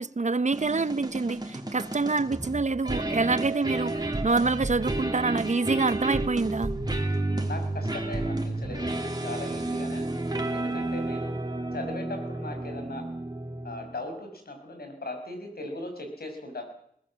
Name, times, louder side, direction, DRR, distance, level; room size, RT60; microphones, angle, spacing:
voice 1, 0.0-6.7, right 3 dB, 50° right, 0.9 m, -26 dB
sound 1, 0.5-14.0, right 2 dB, 25° right, 2.9 m, -31 dB
voice 2, 7.4-11.4 11.7-13.0 13.6-16.6, left 2 dB, 85° left, 6.0 m, -38 dB
21.0 x 18.0 x 7.5 m
wide cardioid pair, 75°, 16 cm